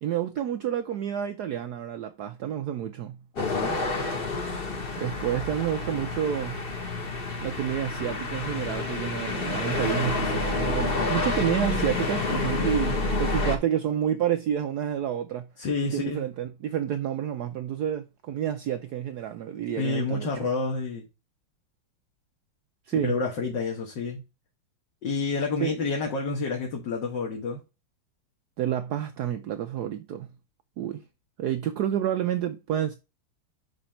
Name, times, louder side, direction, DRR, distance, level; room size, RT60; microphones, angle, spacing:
voice 1, 0.0-3.2 5.0-6.6 7.4-15.5 15.8-20.3 22.9-23.2 25.6-25.7 28.6-30.3 30.8-31.0 31.4-32.9, right 10 dB, 90° right, 0.8 m, -29 dB
voice 2, 3.4-3.8 15.6-16.2 19.8-21.1 23.0-24.2 25.0-27.6, left 4 dB, 60° left, 1.9 m, -29 dB
sound 1, 3.4-13.6, left 3 dB, 35° left, 1.0 m, -29 dB
5.9 x 5.0 x 4.3 m
omnidirectional pair, 2.4 m